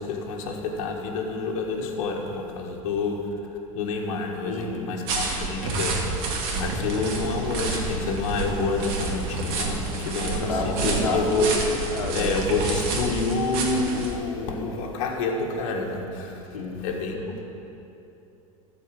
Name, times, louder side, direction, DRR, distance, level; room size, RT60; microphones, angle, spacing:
voice 1, 0.0-3.3 3.7-6.1 6.5-11.5 12.1-16.4 16.8-17.4, left 3 dB, 65° left, 0 dB, 1.6 m, -28 dB
voice 2, 4.4-4.9 10.0-12.4 16.5-16.8, left 3 dB, 85° left, -2 dB, 1.4 m, -30 dB
sound 1, 5.1-14.1, right 3 dB, 55° right, 2.2 m, -29 dB
13.5 x 4.8 x 7.6 m, 2.9 s
hypercardioid pair, 95°, 18 cm